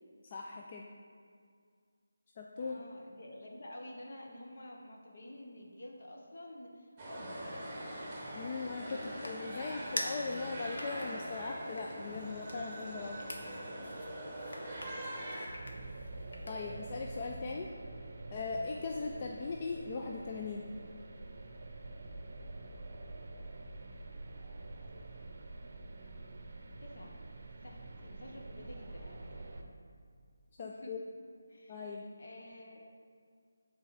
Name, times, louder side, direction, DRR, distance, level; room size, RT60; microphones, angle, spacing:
voice 1, 0.2-0.8 2.4-2.8 8.3-13.2 13.5-13.6 16.5-17.7 18.3-20.7 30.6-31.0 31.7-32.1, left 4 dB, 25° left, 0 dB, 0.3 m, -39 dB
voice 2, 2.6-7.7 26.8-27.2 27.5-29.5 30.6-30.9 31.5-32.9, left 1 dB, 55° left, 0 dB, 1.2 m, -50 dB
sound 1, 7.0-15.5, right 1 dB, 15° right, 1.1 m, -43 dB
sound 2, 8.2-16.9, left 1 dB, 75° left, 1.1 m, -47 dB
sound 3, 15.5-29.6, right 2 dB, 45° right, 0.7 m, -47 dB
8.5 x 4.0 x 4.8 m, 2.1 s
figure-of-eight pair, 170°, 0 cm